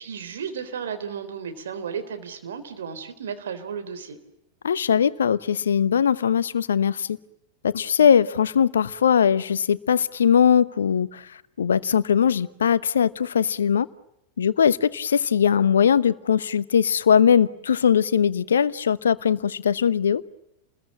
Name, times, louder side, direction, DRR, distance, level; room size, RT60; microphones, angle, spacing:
voice 1, 0.0-4.2, right 7 dB, 65° right, 8 dB, 3.8 m, -34 dB
voice 2, 4.6-7.2 7.6-11.3 11.6-13.9 14.4-20.2, left 8 dB, 65° left, 17 dB, 1.0 m, -20 dB
30.0 x 21.5 x 8.7 m, 0.83 s
figure-of-eight pair, 90°, 0 cm